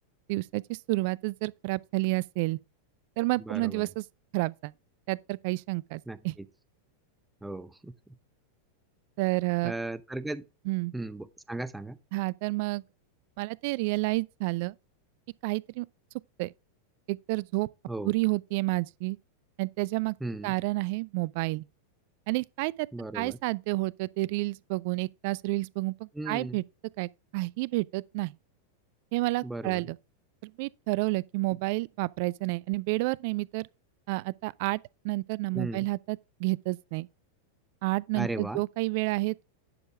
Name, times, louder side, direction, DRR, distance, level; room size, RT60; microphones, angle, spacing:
voice 1, 0.3-2.6 3.2-4.0 4.3-4.7 5.1-6.3 9.2-9.7 10.7-10.9 12.1-12.8 13.4-14.7 15.4-15.9 16.4-16.5 17.1-17.7 18.0-19.2 19.6-20.1 20.4-21.6 22.3-22.9 23.1-26.6 27.0-28.3 29.1-30.0 30.4-33.7 34.1-34.8 35.0-37.1 37.8-39.4, right 23 dB, 45° right, 0.4 m, -30 dB
voice 2, 3.4-3.9 6.1-6.5 7.4-7.9 9.6-10.4 10.9-12.0 17.9-18.1 20.2-20.5 22.9-23.4 26.1-26.6 29.4-29.9 35.5-35.9 38.1-38.6, right 2 dB, 5° right, 0.7 m, -36 dB
10.5 x 6.4 x 3.6 m
figure-of-eight pair, 90°, 0 cm